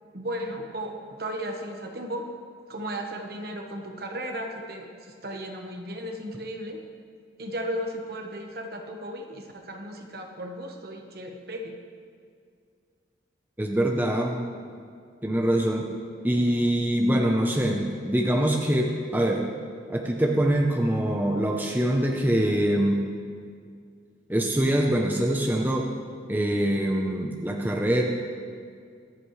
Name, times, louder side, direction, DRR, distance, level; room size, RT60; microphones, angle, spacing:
voice 1, 0.1-2.3 2.7-6.8 7.4-11.8, equal, 55° right, 3 dB, 1.3 m, -35 dB
voice 2, 13.6-14.4 15.2-15.9 16.2-19.4 19.9-23.0 24.3-25.9 26.3-28.0, right 1 dB, 10° right, 1 dB, 0.8 m, -24 dB
24.0 x 8.5 x 3.3 m, 2.2 s
head